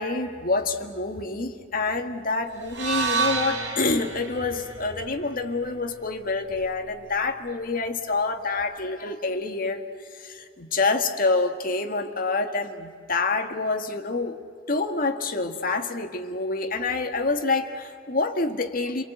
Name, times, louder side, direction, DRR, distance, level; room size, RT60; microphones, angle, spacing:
voice 1, 0.0-9.9 10.2-14.4 14.7-19.0, left 3 dB, 50° left, 5 dB, 1.9 m, -27 dB
sound 1, 2.7-6.9, right 4 dB, 90° right, 5.0 m, -31 dB
29.5 x 22.5 x 8.0 m, 2.2 s
head